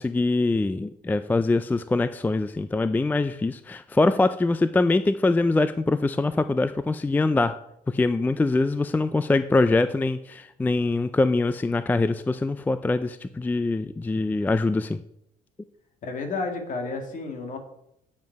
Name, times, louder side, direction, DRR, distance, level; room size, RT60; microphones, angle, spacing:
voice 1, 0.0-7.5 7.9-15.0, left 2 dB, 10° left, 12 dB, 0.4 m, -23 dB
voice 2, 16.0-17.6, left 3 dB, 50° left, 4 dB, 2.3 m, -31 dB
9.4 x 7.4 x 4.7 m, 0.77 s
cardioid pair, 110°, 17 cm